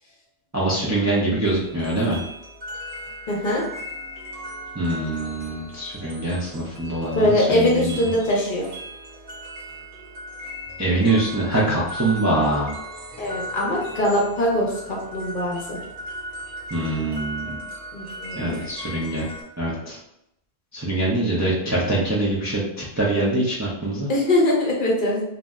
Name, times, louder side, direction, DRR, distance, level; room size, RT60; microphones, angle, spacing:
voice 1, 0.5-2.2 4.7-8.1 10.8-12.8 16.7-17.6 18.4-19.3 19.6-20.0 20.7-24.1, right 2 dB, 25° right, -6 dB, 0.4 m, -24 dB
sound 1, 1.4-19.4, equal, 75° right, 1.1 m, -37 dB
voice 2, 3.3-3.6 7.1-8.7 13.2-15.8 17.9-18.6 24.1-25.2, left 1 dB, 50° left, -3 dB, 0.8 m, -22 dB
2.6 x 2.0 x 3.4 m, 0.81 s
omnidirectional pair, 1.2 m